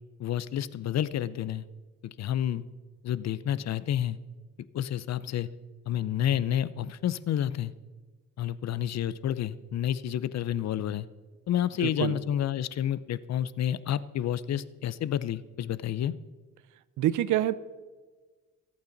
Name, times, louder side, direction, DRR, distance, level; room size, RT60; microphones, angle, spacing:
voice 1, 0.2-1.6 2.0-2.6 3.0-4.2 4.7-5.5 5.9-7.7 8.4-11.1 11.5-16.1, left 11 dB, 60° left, 17 dB, 0.7 m, -29 dB
voice 2, 11.8-12.2 17.0-17.6, right 13 dB, 80° right, 16 dB, 0.8 m, -26 dB
25.0 x 8.7 x 4.0 m, 1.4 s
cardioid pair, 90°, 30 cm